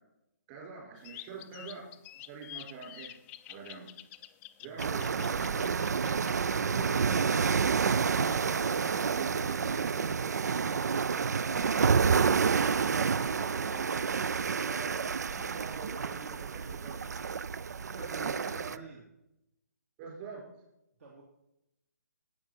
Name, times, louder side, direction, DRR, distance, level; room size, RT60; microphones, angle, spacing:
voice 1, 0.5-1.9 2.3-3.1 3.5-3.9 4.6-5.8 6.5-11.9 12.4-17.1 17.9-18.8 20.0-20.4, right 5 dB, 30° right, -2 dB, 5.2 m, -45 dB
sound 1, 1.0-6.4, left 14 dB, 15° left, 0.3 m, -48 dB
sound 2, 4.8-18.8, right 6 dB, 70° right, 0.4 m, -29 dB
voice 2, 17.4-19.1 21.0-21.2, right 3 dB, 55° right, -1 dB, 2.4 m, -52 dB
12.5 x 8.8 x 4.3 m, 0.86 s
figure-of-eight pair, 145°, 9 cm